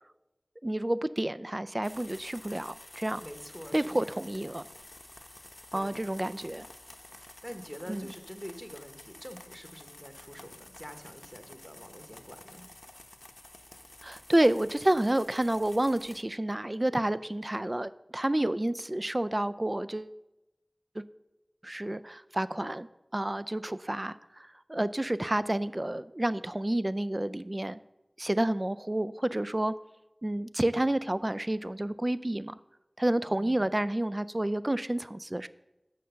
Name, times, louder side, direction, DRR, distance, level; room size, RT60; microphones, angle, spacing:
voice 1, 0.6-3.2 3.7-4.7 5.7-6.7 7.9-8.1 14.0-20.1 21.0-21.1 21.6-27.8 28.2-29.7 30.2-32.6 33.0-35.5, right 1 dB, 35° right, 14 dB, 0.3 m, -30 dB
sound 1, 1.8-16.2, left 1 dB, 55° left, 0.7 m, -51 dB
voice 2, 3.2-4.1 5.7-6.1 7.4-12.6 33.3-33.7, equal, 5° right, 7 dB, 1.0 m, -46 dB
6.5 x 6.4 x 6.8 m, 0.96 s
wide cardioid pair, 40°, 0 cm